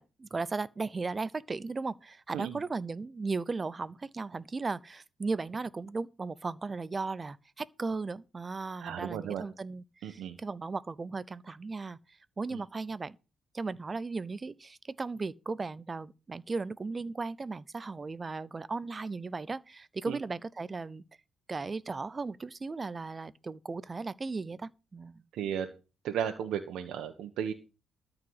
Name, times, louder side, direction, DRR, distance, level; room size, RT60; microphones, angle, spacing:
voice 1, 0.0-12.0 12.4-13.2 13.5-21.0 21.5-25.2, right 4 dB, 30° right, 0.6 m, -36 dB
voice 2, 8.8-9.4 10.0-10.4 12.5-12.6 20.1-20.2 25.3-25.7 26.0-27.5, right 9 dB, 80° right, 1.2 m, -34 dB
13.0 x 4.9 x 8.0 m
cardioid pair, 90°, 0 cm